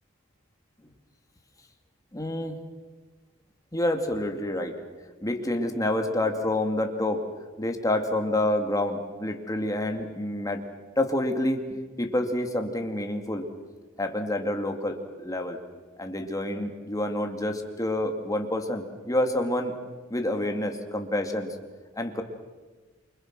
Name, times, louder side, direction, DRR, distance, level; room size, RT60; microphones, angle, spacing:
voice 1, 2.1-2.6 3.7-4.7 5.2-7.2 7.6-10.6 11.0-13.5 14.0-15.6 16.0-19.7 20.1-21.5 22.0-22.2, left 1 dB, 15° left, 4 dB, 2.4 m, -28 dB
29.0 x 25.0 x 6.2 m, 1.3 s
head